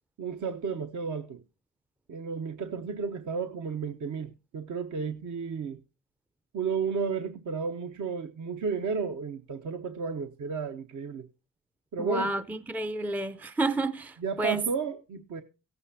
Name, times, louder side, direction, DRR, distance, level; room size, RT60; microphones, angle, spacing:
voice 1, 0.2-1.4 2.1-5.8 6.5-11.3 11.9-12.3 14.2-15.4, right 5 dB, 55° right, 0.9 m, -33 dB
voice 2, 12.0-14.7, right 2 dB, 5° right, 0.5 m, -30 dB
17.0 x 8.2 x 2.7 m
supercardioid pair, 60°, 35 cm